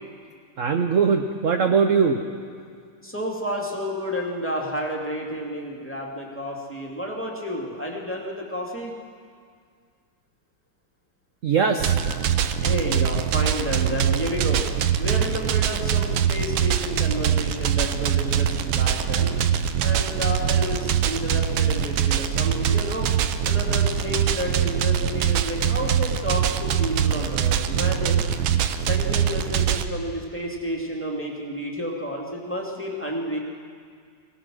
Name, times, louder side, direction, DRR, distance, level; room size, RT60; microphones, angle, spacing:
voice 1, 0.6-2.2 11.4-12.0, right 5 dB, 55° right, 5 dB, 0.9 m, -21 dB
voice 2, 3.0-8.9 12.6-14.6 15.0-19.3 19.8-23.1 23.4-28.2 28.9-33.4, equal, 5° left, -2 dB, 2.3 m, -31 dB
sound 1, 11.8-29.8, right 9 dB, 75° right, 1.5 m, -23 dB
24.0 x 17.5 x 6.2 m, 2.1 s
omnidirectional pair, 2.3 m